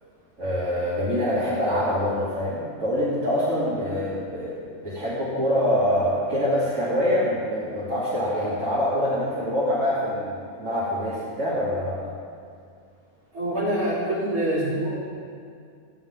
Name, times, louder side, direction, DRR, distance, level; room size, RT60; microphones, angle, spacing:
voice 1, 0.4-12.1, equal, 55° right, -8 dB, 3.2 m, -25 dB
voice 2, 13.3-14.9, right 1 dB, 85° right, -9 dB, 4.9 m, -25 dB
26.5 x 8.9 x 3.8 m, 2.4 s
omnidirectional pair, 1.5 m